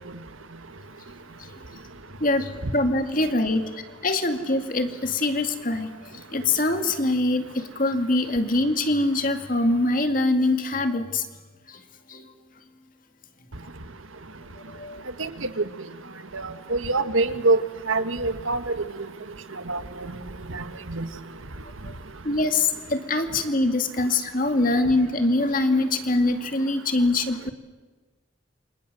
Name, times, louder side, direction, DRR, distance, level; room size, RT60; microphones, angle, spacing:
voice 1, 2.2-5.9 6.3-11.2 11.7-11.8 12.1-12.2 14.7-15.0 21.9-22.0 22.2-27.5, left 2 dB, 40° left, 7 dB, 2.3 m, -24 dB
voice 2, 16.3-17.6 17.9-18.7 19.7-19.8 20.5-21.1, right 3 dB, 85° right, 10 dB, 1.6 m, -25 dB
28.5 x 26.5 x 7.8 m, 1.3 s
head